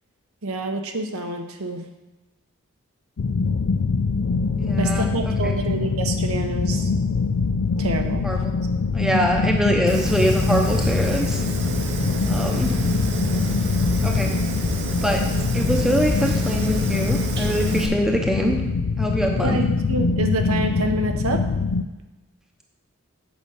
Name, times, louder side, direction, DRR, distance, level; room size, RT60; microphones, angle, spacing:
voice 1, 0.4-1.8 4.8-6.9 7.8-8.2 19.4-21.4, right 2 dB, 75° right, 5 dB, 1.0 m, -27 dB
sound 1, 3.2-21.8, left 4 dB, 60° left, 0.4 m, -23 dB
voice 2, 4.6-5.1 5.4-5.6 8.2-8.5 8.9-11.4 12.3-12.8 14.0-14.3 15.0-15.2 15.5-18.6 19.0-19.6, equal, ahead, 1 dB, 0.8 m, -24 dB
Fire, 9.9-17.9, right 3 dB, 50° right, 0.9 m, -30 dB
8.2 x 5.1 x 6.6 m, 1.1 s
head